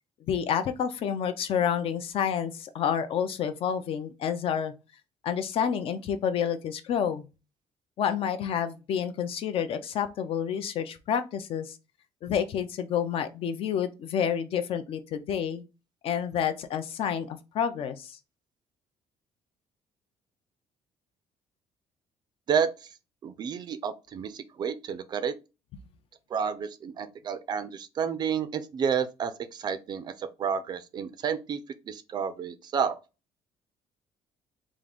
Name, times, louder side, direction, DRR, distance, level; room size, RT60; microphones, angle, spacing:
voice 1, 0.3-4.7 5.2-7.3 8.0-11.8 12.2-15.6 16.0-18.2, left 8 dB, 50° left, 0.5 m, -29 dB
voice 2, 23.2-25.3 26.3-31.6 31.9-33.0, right 7 dB, 35° right, 0.4 m, -30 dB
3.7 x 2.4 x 3.5 m
cardioid pair, 170°, 12 cm